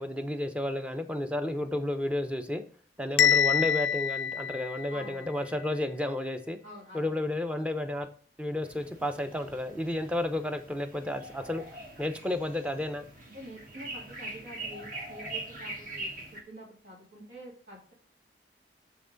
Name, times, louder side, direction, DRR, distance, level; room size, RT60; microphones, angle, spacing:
voice 1, 0.0-2.6 3.0-6.6 6.9-8.1 8.4-11.6 12.0-13.0, left 1 dB, 5° right, 7 dB, 0.6 m, -32 dB
Bell, 3.2-5.2, left 8 dB, 85° left, 0.4 m, -26 dB
voice 2, 4.9-5.3 6.6-7.2 13.3-17.9, right 1 dB, 85° right, -3 dB, 2.5 m, -47 dB
sound 1, 8.6-16.4, right 2 dB, 50° right, 1.5 m, -43 dB
6.9 x 5.8 x 3.9 m, 0.43 s
head